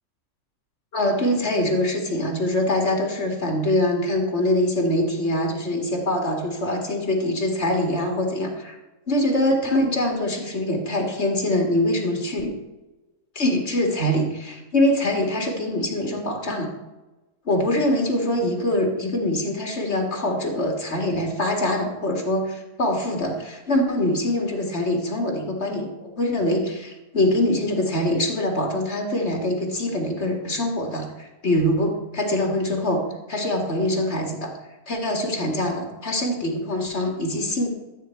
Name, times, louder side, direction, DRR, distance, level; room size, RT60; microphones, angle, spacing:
voice 1, 0.9-8.8 9.1-12.5 13.4-16.7 17.5-33.0 33.3-34.5 34.9-37.7, left 1 dB, 45° left, 1 dB, 2.5 m, -24 dB
13.5 x 8.5 x 4.6 m, 1.1 s
omnidirectional pair, 1.5 m